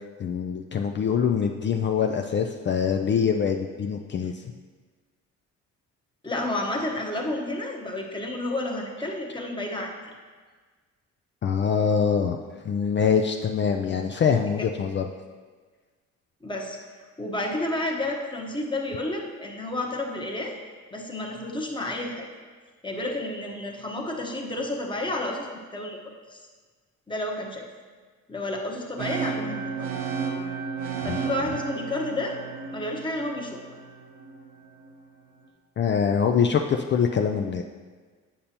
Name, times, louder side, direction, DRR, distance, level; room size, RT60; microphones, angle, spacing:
voice 1, 0.2-4.4 11.4-12.4 12.6-15.1 31.0-31.2 35.8-37.6, left 6 dB, 40° left, 4 dB, 0.4 m, -24 dB
voice 2, 6.2-9.9 16.4-16.8 17.2-20.5 20.9-22.3 22.8-26.0 26.3-26.4 27.1-27.7 28.3-29.9 31.0-32.4 32.7-33.6, left 1 dB, 15° left, 0 dB, 1.0 m, -31 dB
sound 1, 29.0-34.9, right 5 dB, 85° right, 0.9 m, -33 dB
8.6 x 5.3 x 2.9 m, 1.5 s
cardioid pair, 90°, 30 cm